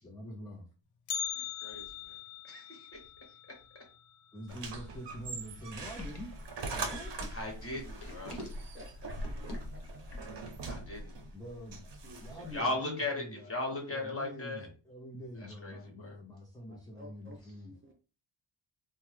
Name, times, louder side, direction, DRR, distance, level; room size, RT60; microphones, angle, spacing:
voice 1, 0.0-0.7 4.3-6.3 6.7-7.1 11.3-11.9 12.2-17.7, equal, 10° left, -4 dB, 0.5 m, -45 dB
Bell, 1.1-5.2 5.5-5.6 6.0-6.1 6.9-7.0 7.8-8.1 8.4-8.5, left 9 dB, 70° left, 0.5 m, -42 dB
voice 2, 1.3-2.2 2.4-3.0 7.3-8.4 10.7-11.2 12.5-14.7 15.4-16.2, left 2 dB, 25° left, 1 dB, 1.1 m, -38 dB
sound 1, 4.5-12.6, right 2 dB, 55° right, 0.7 m, -42 dB
sound 2, 5.7-10.4, left 1 dB, 50° left, 1.0 m, -46 dB
voice 3, 8.7-9.2 9.5-10.0 12.0-12.5 16.7-17.4 17.6-17.9, left 1 dB, 25° right, 0 dB, 0.7 m, -52 dB
2.9 x 2.1 x 3.2 m, 0.35 s
wide cardioid pair, 100°, 49 cm